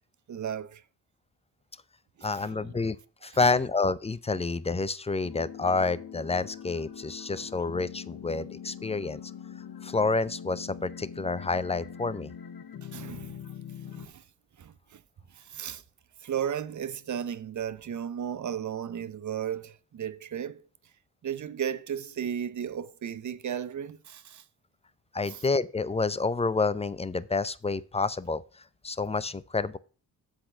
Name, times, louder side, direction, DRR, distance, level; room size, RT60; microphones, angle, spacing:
voice 1, 0.3-0.8 2.3-2.8 3.4-3.5 4.3-4.4 7.4-7.5 12.8-13.4 13.9-14.2 14.6-15.0 15.3-15.8 16.2-20.6 21.2-24.4 25.3-25.4, right 9 dB, 40° right, 0.7 m, -35 dB
voice 2, 2.2-3.0 3.2-9.2 9.8-12.3 25.1-28.4 28.8-29.8, left 3 dB, 15° left, 0.5 m, -28 dB
sound 1, 5.2-14.1, left 8 dB, 50° left, 1.1 m, -43 dB
7.7 x 4.3 x 6.7 m
hypercardioid pair, 40°, 45 cm